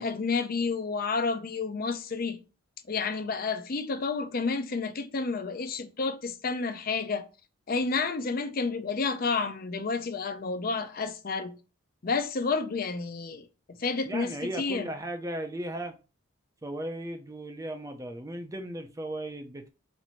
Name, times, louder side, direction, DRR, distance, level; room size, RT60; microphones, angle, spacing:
voice 1, 0.0-2.4 2.9-7.2 7.7-11.6 12.0-13.5 13.8-14.3 14.6-14.8, left 4 dB, 45° left, 0.5 m, -30 dB
voice 2, 14.0-15.9 16.6-19.7, right 1 dB, 15° right, 0.5 m, -36 dB
4.4 x 2.6 x 4.3 m
head